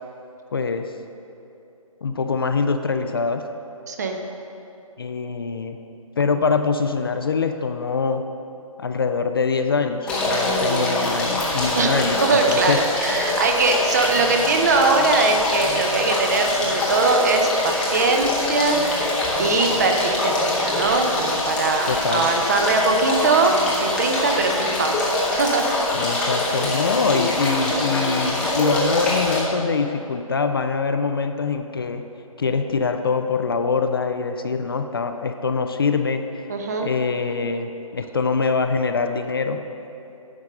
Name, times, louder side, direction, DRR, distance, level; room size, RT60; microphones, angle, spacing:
voice 1, 0.5-0.9 2.0-3.5 5.0-5.8 6.2-8.2 8.8-12.2 12.5-12.8 21.9-22.3 25.9-32.1 32.4-36.5 36.8-39.6, left 4 dB, 40° left, 7 dB, 0.4 m, -24 dB
voice 2, 3.9-4.2 11.8-23.5 23.8-25.7 36.5-36.9, right 3 dB, 30° right, 3 dB, 0.7 m, -21 dB
sound 1, 10.1-29.4, left 1 dB, 5° left, 0.8 m, -24 dB
9.6 x 5.3 x 6.4 m, 2.8 s
figure-of-eight pair, 155°, 18 cm